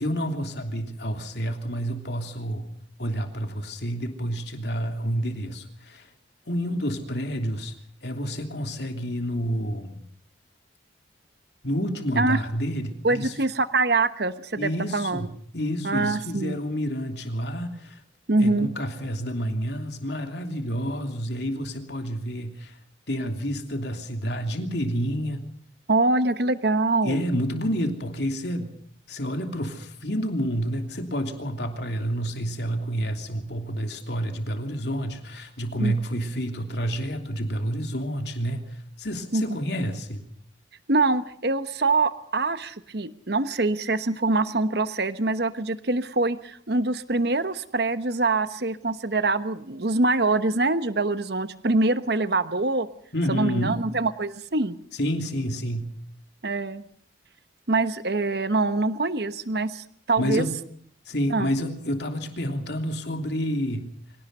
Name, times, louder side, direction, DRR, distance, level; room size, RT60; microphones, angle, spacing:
voice 1, 0.0-2.7 3.0-6.1 6.5-7.7 8.0-10.0 11.6-13.3 14.6-15.3 15.5-18.0 18.4-22.8 23.1-25.4 27.0-28.7 29.1-40.2 53.1-53.8 54.9-55.9 60.2-60.6 61.1-63.9, equal, 60° left, 5 dB, 3.1 m, -29 dB
voice 2, 13.0-15.3 15.8-16.6 18.3-18.7 25.9-27.2 35.8-35.9 39.3-39.4 40.9-52.9 53.3-54.8 56.4-56.8 57.7-60.5 61.3-61.5, right 3 dB, 55° right, 12 dB, 1.1 m, -24 dB
24.5 x 17.5 x 6.7 m, 0.62 s
head